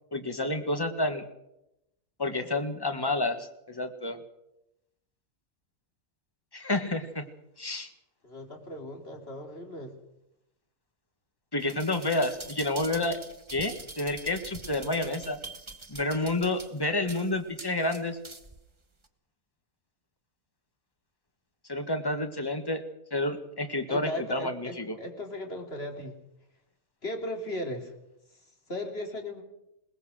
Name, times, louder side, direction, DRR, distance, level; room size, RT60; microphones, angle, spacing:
voice 1, 0.1-1.2 2.2-4.2 6.5-7.2 7.6-7.9 11.5-13.2 13.5-15.4 15.9-18.2 21.7-22.8 23.1-25.0, left 2 dB, 15° left, 6 dB, 1.7 m, -29 dB
voice 2, 8.2-9.9 23.9-26.2 27.0-27.9 28.7-29.4, left 1 dB, 45° left, 2 dB, 3.3 m, -37 dB
sound 1, 11.6-18.6 19.0-19.1, right 3 dB, 20° right, 1.3 m, -44 dB
21.5 x 19.5 x 6.4 m, 0.86 s
omnidirectional pair, 1.5 m